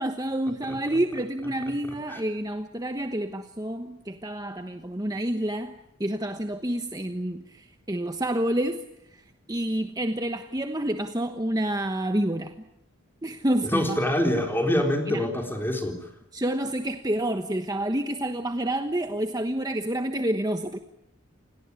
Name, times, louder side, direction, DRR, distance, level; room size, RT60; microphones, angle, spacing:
voice 1, 0.0-5.7 6.0-12.6 13.2-14.0 15.1-15.2 16.3-20.8, right 1 dB, 20° right, 6 dB, 1.2 m, -28 dB
voice 2, 13.7-16.0, left 1 dB, 10° left, 3 dB, 3.9 m, -25 dB
29.0 x 18.5 x 9.7 m, 0.83 s
head